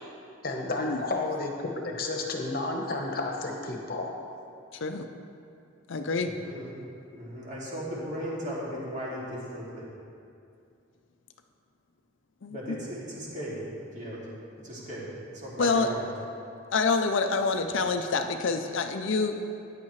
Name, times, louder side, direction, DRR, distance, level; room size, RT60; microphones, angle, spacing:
voice 1, 0.4-4.1, left 2 dB, 45° left, 1 dB, 1.1 m, -31 dB
voice 2, 4.7-5.1 5.9-6.3 12.4-12.8 15.6-15.9 16.7-19.4, left 4 dB, 65° left, 7 dB, 0.5 m, -27 dB
voice 3, 6.2-6.7 7.2-9.8 12.5-13.6 13.9-14.3 14.6-16.1, equal, 35° right, -6 dB, 2.3 m, -37 dB
14.0 x 9.6 x 3.2 m, 2.5 s
head